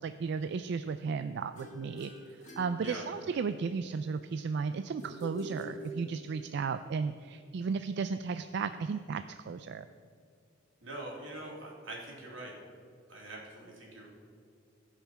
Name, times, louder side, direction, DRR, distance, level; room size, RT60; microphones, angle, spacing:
voice 1, 0.0-2.1 2.6-9.8, right 5 dB, 60° right, 11 dB, 0.3 m, -34 dB
sound 1, 1.6-3.5 5.0-6.5, equal, 40° left, 2.2 m, -45 dB
voice 2, 10.8-12.5 13.1-14.1, right 1 dB, 80° right, -3 dB, 3.1 m, -43 dB
16.5 x 5.8 x 5.8 m, 2.3 s
head